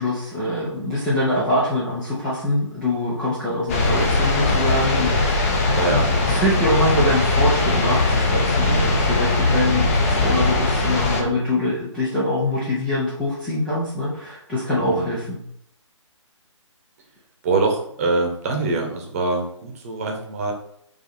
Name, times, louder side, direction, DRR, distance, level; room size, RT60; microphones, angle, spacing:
voice 1, 0.0-5.5 5.9-15.4, left 1 dB, 5° left, -9 dB, 0.3 m, -24 dB
sound 1, 3.7-11.2, left 2 dB, 30° left, 0.7 m, -20 dB
voice 2, 5.7-6.1 14.8-15.2 17.4-20.5, right 3 dB, 30° right, 2 dB, 0.9 m, -24 dB
4.6 x 2.7 x 4.0 m, 0.69 s
figure-of-eight pair, 140°, 16 cm